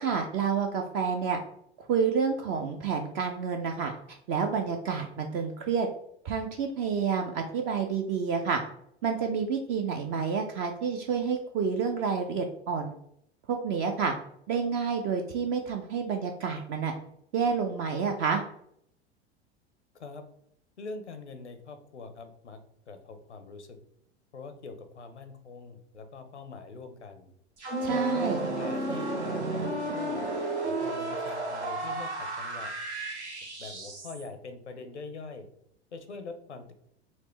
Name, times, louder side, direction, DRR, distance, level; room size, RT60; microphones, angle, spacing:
voice 1, 0.0-1.4 1.9-5.9 6.2-8.6 9.0-12.9 13.5-14.1 14.5-16.9 17.3-18.4 27.8-28.4, right 6 dB, 35° right, 4 dB, 0.4 m, -29 dB
voice 2, 20.8-22.6 22.9-23.8 24.3-27.3 27.9-30.3 30.6-32.7 33.6-35.5 35.9-36.7, left 4 dB, 85° left, 8 dB, 0.6 m, -43 dB
sound 1, 27.6-34.3, right 2 dB, 80° right, 1.0 m, -32 dB
4.1 x 2.0 x 3.0 m, 0.70 s
figure-of-eight pair, 80°, 34 cm